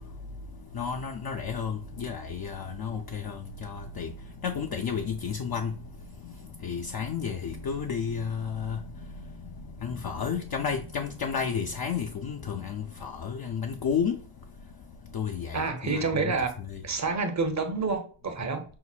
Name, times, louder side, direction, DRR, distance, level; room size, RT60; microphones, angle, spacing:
voice 1, 0.7-4.1 4.4-5.7 6.2-6.3 6.6-8.8 9.8-14.2 15.1-16.8, left 6 dB, 50° left, 0.5 m, -32 dB
voice 2, 15.5-16.6 16.8-18.6, right 4 dB, 35° right, 0.8 m, -28 dB
5.6 x 2.1 x 2.4 m
cardioid pair, 75°, 49 cm